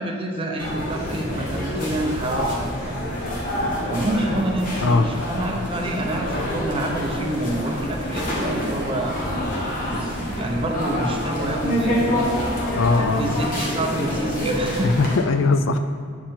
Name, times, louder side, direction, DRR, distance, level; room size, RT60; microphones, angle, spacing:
voice 1, 0.0-3.0 3.9-9.2 9.9-12.3 13.0-14.9, right 1 dB, 25° right, 1 dB, 0.7 m, -27 dB
sound 1, 0.6-15.2, equal, 45° left, 1.4 m, -27 dB
voice 2, 12.8-13.4 14.8-15.8, left 3 dB, 85° left, 9 dB, 0.4 m, -20 dB
8.6 x 4.7 x 3.7 m, 2.2 s
head